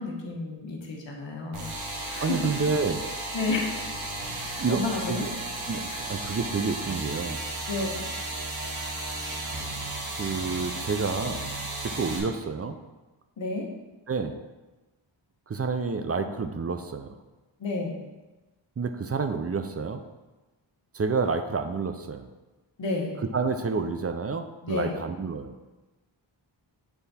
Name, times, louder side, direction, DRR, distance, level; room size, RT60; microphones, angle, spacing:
voice 1, 0.0-1.7 2.1-2.5 3.3-3.8 4.4-5.2 7.7-8.0 13.4-13.7 17.6-18.0 22.8-23.1 24.6-25.0, left 3 dB, 65° left, -1 dB, 1.3 m, -31 dB
sound 1, 1.5-12.2, right 2 dB, 85° right, 1.3 m, -34 dB
voice 2, 2.2-3.0 4.6-5.3 5.7-7.4 10.2-11.5 11.8-12.8 14.1-14.4 15.5-17.2 18.8-20.0 20.9-22.3 23.3-25.5, right 4 dB, 30° right, 8 dB, 0.5 m, -29 dB
6.9 x 3.4 x 4.2 m, 1.1 s
cardioid pair, 65°, 47 cm